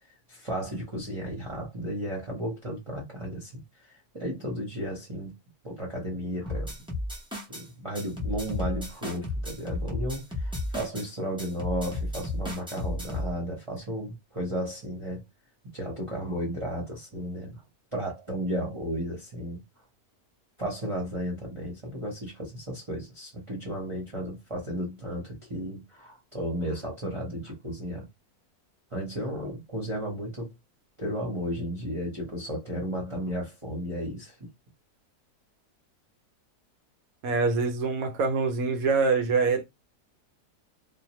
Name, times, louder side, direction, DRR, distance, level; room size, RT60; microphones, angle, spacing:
voice 1, 0.3-5.3 5.6-6.7 7.5-15.2 15.7-17.6 17.9-19.6 20.6-28.1 28.9-30.5 31.0-34.3, equal, 25° right, 0.8 m, -34 dB
sound 1, 6.5-7.6 8.0-11.1 11.4-13.3, left 2 dB, 5° right, 0.4 m, -33 dB
voice 2, 37.2-39.7, right 4 dB, 70° right, 1.0 m, -25 dB
2.6 x 2.1 x 2.9 m
omnidirectional pair, 1.7 m